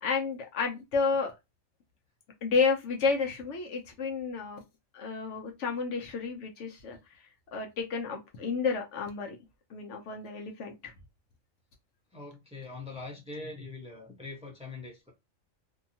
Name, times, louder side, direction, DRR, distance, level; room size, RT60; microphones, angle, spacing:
voice 1, 0.0-1.3 2.4-4.6 4.9-7.0 7.5-9.4 9.7-10.9, left 4 dB, 70° left, 0.9 m, -31 dB
voice 2, 12.1-15.1, left 3 dB, 5° right, 0.6 m, -42 dB
2.7 x 2.2 x 2.7 m
omnidirectional pair, 1.4 m